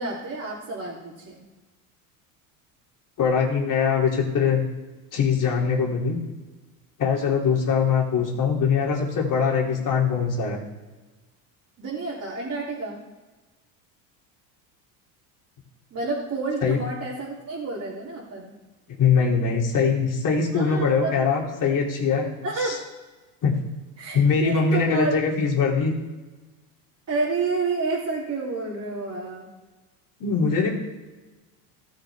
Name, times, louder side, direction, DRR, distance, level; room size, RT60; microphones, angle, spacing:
voice 1, 0.0-1.4 11.8-13.0 15.9-18.5 20.5-21.1 22.4-22.8 24.0-25.2 27.1-29.5, right 3 dB, 35° right, -7 dB, 3.0 m, -29 dB
voice 2, 3.2-4.6 5.1-6.2 7.0-10.6 16.6-16.8 19.0-22.3 22.6-22.8 23.4-23.5 24.1-25.9 30.2-30.8, left 6 dB, 40° left, -1 dB, 3.0 m, -22 dB
17.0 x 6.6 x 3.5 m, 1.2 s
supercardioid pair, 105°, 47 cm